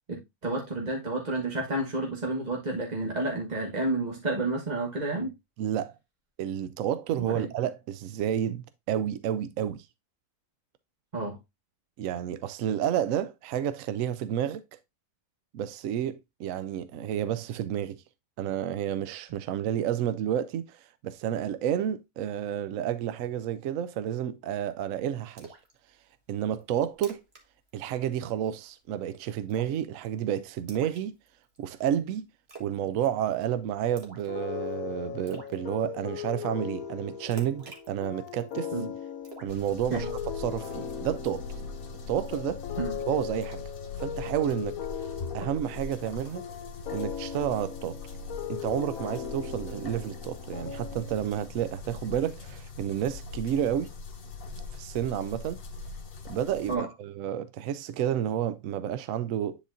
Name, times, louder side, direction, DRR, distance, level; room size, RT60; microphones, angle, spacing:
voice 1, 0.1-5.3 7.2-7.5 11.1-11.4 38.7-38.9 39.9-40.1 42.8-42.9 56.7-56.9, right 2 dB, 30° right, 1.4 m, -30 dB
voice 2, 5.6-6.0 6.4-9.9 12.0-14.6 15.5-18.0 18.4-25.5 26.3-27.2 27.7-31.1 31.6-32.2 32.6-38.7 39.4-41.6 42.1-42.6 43.1-43.6 44.0-44.8 45.3-46.4 46.9-48.0 48.5-53.9 54.7-55.6 56.2-59.6, right 10 dB, 75° right, 0.9 m, -30 dB
Splash splatter, 25.4-25.7 26.1-26.2 26.6-26.7 26.9-27.4 27.7-27.9 28.2-28.6 29.5-29.9 30.7-31.6 32.5-32.8 33.0-33.4 34.0-34.3 34.7-34.8 35.3-35.6 37.3-38.6 39.2-40.2 40.6-40.9, right 4 dB, 50° right, 1.9 m, -47 dB
sound 1, 34.3-51.5, left 8 dB, 85° left, 1.2 m, -38 dB
sound 2, 39.5-56.7, left 4 dB, 45° left, 1.0 m, -41 dB
10.0 x 4.3 x 2.5 m
omnidirectional pair, 1.4 m